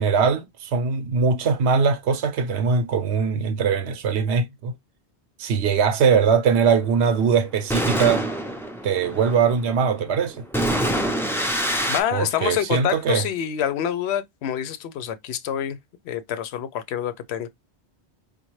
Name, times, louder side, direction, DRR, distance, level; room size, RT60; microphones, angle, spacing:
voice 1, 0.0-4.7 5.4-8.2 8.8-10.4 12.1-13.2, right 6 dB, 85° right, 0.9 m, -21 dB
sound 1, 6.8-12.0, right 1 dB, 5° left, 0.3 m, -26 dB
voice 2, 11.9-15.8 16.1-17.5, left 10 dB, 80° left, 0.8 m, -26 dB
5.2 x 2.2 x 3.0 m
omnidirectional pair, 1.1 m